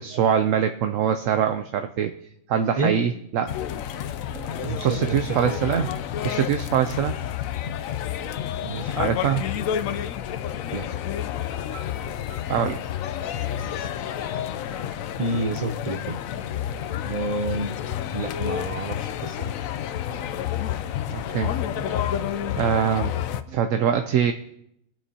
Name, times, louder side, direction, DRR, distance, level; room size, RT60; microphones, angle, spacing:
voice 1, 0.0-2.1 2.5-3.6 3.9-5.9 6.2-7.2 9.0-9.4 11.7-11.9 12.3-12.8 13.2-13.3 14.2-14.3 14.7-14.8 20.1-20.2 21.1-22.2 22.6-23.2 23.5-24.3, right 8 dB, 70° right, 8 dB, 0.9 m, -24 dB
voice 2, 2.8-3.1 4.6-5.6 8.6-9.4 10.7-10.9 15.2-16.2 17.0-17.8 18.1-19.5, right 3 dB, 40° right, 6 dB, 0.5 m, -29 dB
sound 1, 3.5-23.4, left 10 dB, 75° left, 1.0 m, -30 dB
20.0 x 9.0 x 2.8 m, 0.77 s
omnidirectional pair, 1.5 m